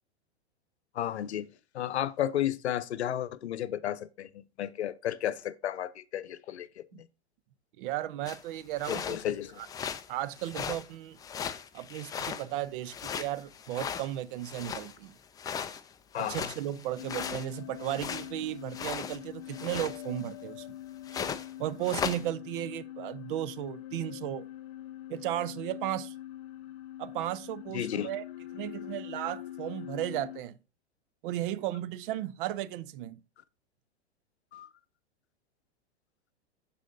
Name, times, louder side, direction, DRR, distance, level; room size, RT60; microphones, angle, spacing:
voice 1, 0.9-7.1 8.9-9.6 16.1-16.5 27.7-28.1 34.5-34.7, left 11 dB, 80° left, 0.7 m, -33 dB
voice 2, 7.8-9.7 10.1-11.2 11.7-15.2 16.2-20.7 21.6-24.5 25.1-26.1 27.0-28.2 28.5-30.6 31.2-33.2, right 13 dB, 55° right, 0.7 m, -35 dB
sound 1, 8.3-8.4 8.8-9.3 9.6-10.1 10.3-10.9 11.2-12.6 12.8-15.0 15.4-18.3 18.7-19.2 19.5-20.3 21.1-21.5 21.8-22.2, left 7 dB, 10° left, 0.3 m, -37 dB
sound 2, 17.0-30.4, left 13 dB, 45° left, 0.8 m, -43 dB
12.0 x 4.1 x 2.5 m
hypercardioid pair, 105°, 33 cm